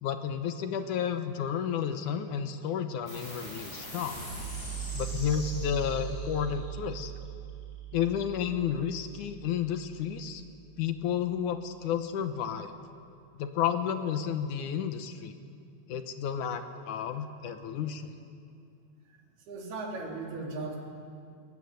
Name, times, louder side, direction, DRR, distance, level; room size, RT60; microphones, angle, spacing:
voice 1, 0.0-4.2 4.9-7.1 7.9-10.4 10.8-12.7 13.4-15.3 15.9-18.1, left 8 dB, 70° left, 8 dB, 1.9 m, -31 dB
sound 1, 3.1-10.0, right 6 dB, 20° left, 8.0 m, -39 dB
voice 2, 19.1-20.8, right 3 dB, 65° right, -1 dB, 5.4 m, -38 dB
23.0 x 20.0 x 9.4 m, 2.4 s
omnidirectional pair, 4.8 m